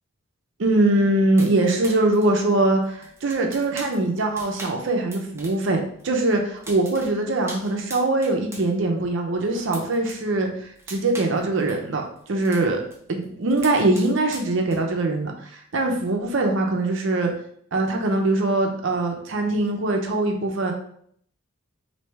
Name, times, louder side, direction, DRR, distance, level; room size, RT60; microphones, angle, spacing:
voice 1, 0.6-10.5 10.9-12.0 12.3-12.8 13.1-17.3 17.7-20.7, right 2 dB, 60° right, 2 dB, 0.5 m, -22 dB
sound 1, 1.4-5.7 6.0-8.7 9.0-10.3 10.6-13.0 13.2-15.1, right 2 dB, 10° right, 0.4 m, -41 dB
3.2 x 2.7 x 3.2 m, 0.64 s
head